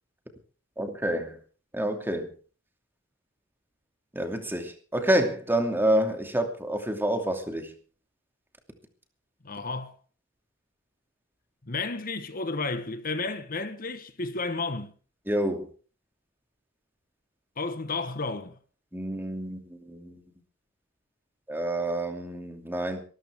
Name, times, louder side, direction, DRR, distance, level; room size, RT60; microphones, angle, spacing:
voice 1, 0.8-1.4 1.7-2.3 4.1-7.7 15.3-15.6 18.9-20.2 21.5-23.0, right 1 dB, 10° right, 2.6 m, -28 dB
voice 2, 9.4-9.9 11.6-14.9 17.6-18.6, left 3 dB, 45° left, 1.2 m, -32 dB
23.0 x 13.5 x 3.6 m
head